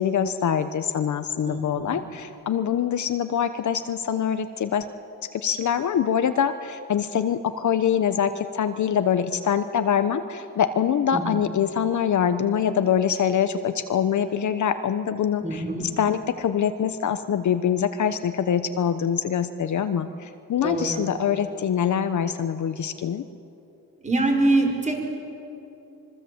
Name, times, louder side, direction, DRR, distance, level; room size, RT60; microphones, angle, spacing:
voice 1, 0.0-4.8 5.4-15.6 16.0-23.2, left 8 dB, 50° left, 10 dB, 1.0 m, -24 dB
voice 2, 15.4-15.8 20.6-21.0 24.0-25.0, right 2 dB, 20° right, 1 dB, 5.6 m, -24 dB
25.5 x 24.0 x 8.0 m, 2.7 s
cardioid pair, 125°, 37 cm